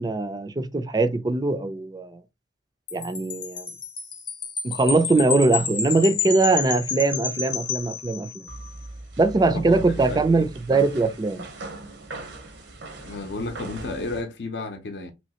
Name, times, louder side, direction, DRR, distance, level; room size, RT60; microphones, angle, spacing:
voice 1, 0.0-2.2 2.9-3.7 4.6-8.4 9.2-11.5, right 3 dB, 20° right, 0.3 m, -22 dB
Wind chime, 2.9-8.6, left 6 dB, 25° left, 0.6 m, -30 dB
sound 1, 8.5-14.2, right 2 dB, 85° right, 0.9 m, -39 dB
voice 2, 9.5-10.5 13.0-15.1, left 2 dB, 70° left, 0.6 m, -33 dB
3.1 x 3.1 x 2.8 m
head